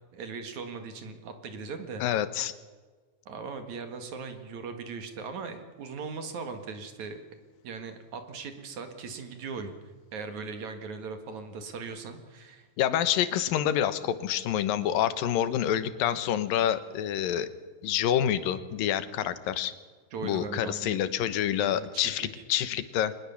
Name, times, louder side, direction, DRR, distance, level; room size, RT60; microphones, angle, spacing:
voice 1, 0.1-2.0 3.3-7.2 7.6-9.7 10.1-12.7 20.1-21.0 21.6-22.4, right 4 dB, 60° right, 7 dB, 3.1 m, -39 dB
voice 2, 2.0-2.5 12.8-17.5 17.8-19.7 20.2-23.1, left 10 dB, 80° left, 13 dB, 2.8 m, -27 dB
23.0 x 20.0 x 7.1 m, 1.4 s
omnidirectional pair, 4.0 m